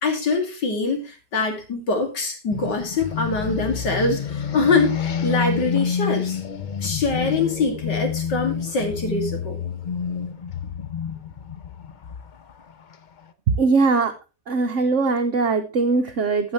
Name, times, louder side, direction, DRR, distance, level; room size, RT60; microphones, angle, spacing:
voice 1, 0.0-6.4 6.8-9.6, left 3 dB, 90° left, 3 dB, 3.1 m, -24 dB
sound 1, 2.5-13.2, left 7 dB, 70° left, 0.4 m, -28 dB
voice 2, 13.6-14.1 14.5-16.5, right 4 dB, 55° right, 7 dB, 1.0 m, -20 dB
14.0 x 7.9 x 3.2 m, 0.28 s
omnidirectional pair, 1.8 m